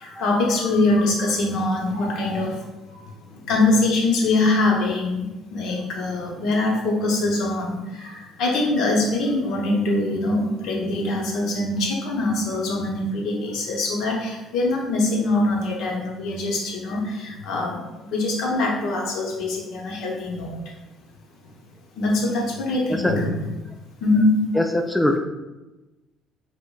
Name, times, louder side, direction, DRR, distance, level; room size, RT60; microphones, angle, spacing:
voice 1, 0.0-2.6 3.5-5.2 5.5-17.8 18.1-20.6 22.0-23.4 24.0-24.3, left 2 dB, 70° left, -1 dB, 0.8 m, -23 dB
voice 2, 24.6-25.2, left 1 dB, 5° left, 4 dB, 0.3 m, -22 dB
5.0 x 2.1 x 2.3 m, 1.1 s
supercardioid pair, 90°, 0 cm